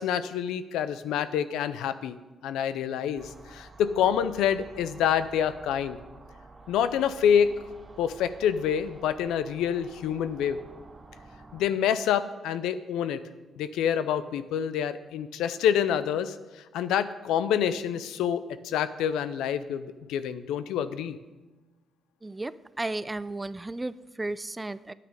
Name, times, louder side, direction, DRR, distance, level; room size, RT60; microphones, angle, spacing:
voice 1, 0.0-2.2 2.4-6.0 6.7-7.5 8.0-10.6 11.5-13.2 13.6-16.4 16.7-21.2, left 9 dB, 85° left, 13 dB, 0.5 m, -27 dB
sound 1, 3.2-11.7, right 3 dB, 35° right, 2.8 m, -50 dB
voice 2, 22.2-24.9, right 2 dB, 20° right, 17 dB, 0.4 m, -34 dB
9.3 x 8.6 x 5.1 m, 1.2 s
cardioid pair, 70°, 0 cm